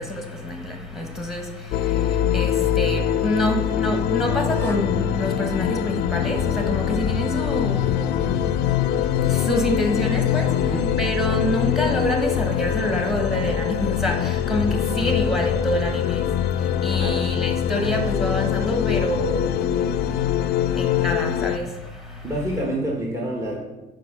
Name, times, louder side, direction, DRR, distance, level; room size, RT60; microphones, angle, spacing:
voice 1, 0.0-8.5 9.2-16.3 16.6-20.2 20.7-21.7 22.1-22.2, left 1 dB, ahead, 1.4 m, -27 dB
sound 1, 1.7-21.6, left 10 dB, 75° left, 0.4 m, -23 dB
sound 2, 2.9-6.7 11.2-13.5 14.0-19.7, left 1 dB, 15° left, 0.7 m, -43 dB
voice 2, 10.5-10.9 17.0-17.3 22.2-23.6, right 1 dB, 20° right, 1.3 m, -27 dB
6.0 x 4.9 x 5.9 m
cardioid pair, 110°, 17 cm